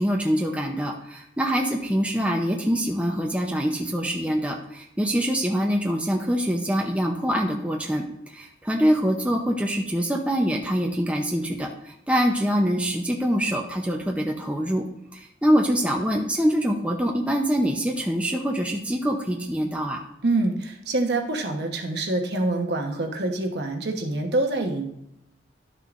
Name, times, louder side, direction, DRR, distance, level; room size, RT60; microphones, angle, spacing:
voice 1, 0.0-8.0 8.3-14.8 15.1-20.0, equal, 5° right, 1 dB, 0.6 m, -24 dB
voice 2, 20.2-24.9, right 2 dB, 60° right, 3 dB, 1.1 m, -26 dB
12.0 x 6.5 x 2.5 m, 0.80 s
head